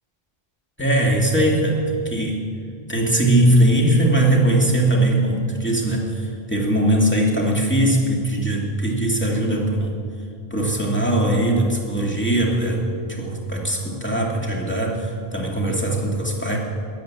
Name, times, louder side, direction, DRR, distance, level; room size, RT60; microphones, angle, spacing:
voice 1, 0.8-1.8 2.0-2.5 2.9-9.9 10.5-12.8 13.1-16.6, right 1 dB, 10° left, -2 dB, 2.3 m, -20 dB
13.5 x 11.0 x 8.3 m, 2.2 s
omnidirectional pair, 1.0 m